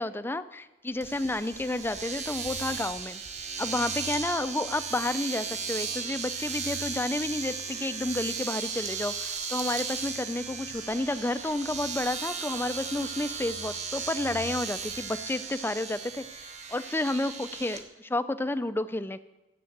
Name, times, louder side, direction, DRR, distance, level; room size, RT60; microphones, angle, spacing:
voice 1, 0.0-3.2 3.6-19.2, left 2 dB, 10° left, 13 dB, 0.4 m, -31 dB
Domestic sounds home sounds, 1.0-17.8, right 5 dB, 35° right, 1.1 m, -36 dB
13.5 x 7.5 x 7.9 m, 1.0 s
head